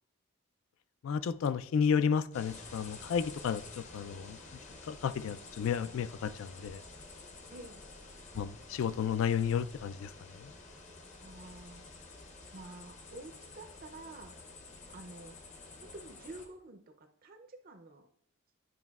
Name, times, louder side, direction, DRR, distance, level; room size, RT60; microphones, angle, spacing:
voice 1, 1.0-4.4 4.8-6.8 8.3-10.1 10.4-10.5, left 7 dB, 70° left, 16 dB, 0.3 m, -32 dB
sound 1, 2.3-16.5, left 3 dB, 35° left, 0.6 m, -50 dB
voice 2, 7.5-7.8 11.2-11.8 12.5-14.4 14.9-15.4 15.8-18.1, right 2 dB, 40° right, 6 dB, 0.5 m, -49 dB
9.3 x 5.5 x 2.3 m, 0.74 s
head